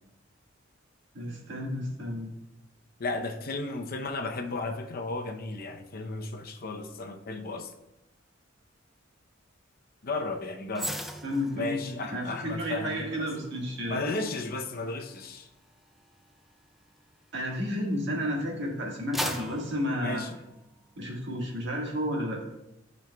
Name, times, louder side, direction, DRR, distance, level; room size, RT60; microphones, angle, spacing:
voice 1, 1.1-2.3 11.2-14.0 17.3-20.2 21.0-22.4, equal, 65° right, -1 dB, 1.6 m, -32 dB
voice 2, 3.0-7.7 10.0-10.9 11.5-13.3 13.9-15.5 20.0-20.4, left 3 dB, 50° left, 5 dB, 0.7 m, -34 dB
sound 1, 10.7-18.1 18.6-21.0 21.3-21.5, equal, ahead, 0.4 m, -41 dB
12.0 x 5.2 x 2.3 m, 0.89 s
head